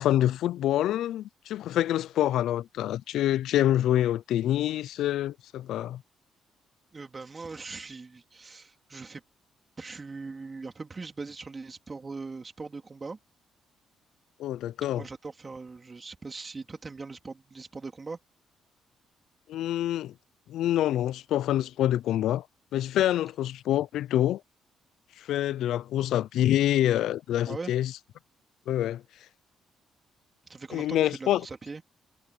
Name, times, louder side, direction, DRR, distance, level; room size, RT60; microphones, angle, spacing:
voice 1, 0.0-6.0 14.4-15.0 19.5-20.1 20.5-22.4 22.7-24.4 25.2-27.9 28.7-29.0 30.7-31.4, left 12 dB, 80° left, 0.4 m, -26 dB
voice 2, 6.9-9.2 9.8-13.2 14.9-18.2 27.4-27.7 30.4-31.8, right 4 dB, 30° right, 3.2 m, -40 dB
cardioid pair, 90°, 0 cm